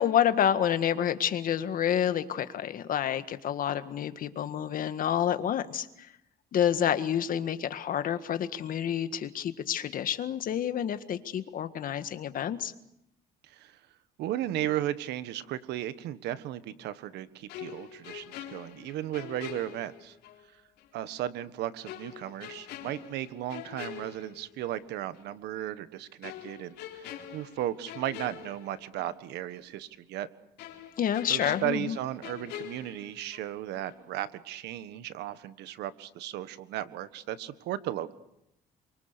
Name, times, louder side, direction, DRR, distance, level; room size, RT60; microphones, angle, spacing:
voice 1, 0.0-6.1 6.5-12.7 31.0-32.0, left 9 dB, 55° left, 10 dB, 1.7 m, -28 dB
voice 2, 13.5-13.8 14.2-20.1 20.9-30.3 31.3-38.2, right 13 dB, 80° right, 13 dB, 1.5 m, -35 dB
sound 1, 17.5-20.4 20.8-20.9 21.9-24.8 25.1-25.3 26.2-29.2 29.5-29.6 30.6-33.6 33.9-34.1, left 11 dB, 85° left, 4.1 m, -45 dB
28.0 x 24.5 x 6.9 m, 0.82 s
cardioid pair, 110°, 17 cm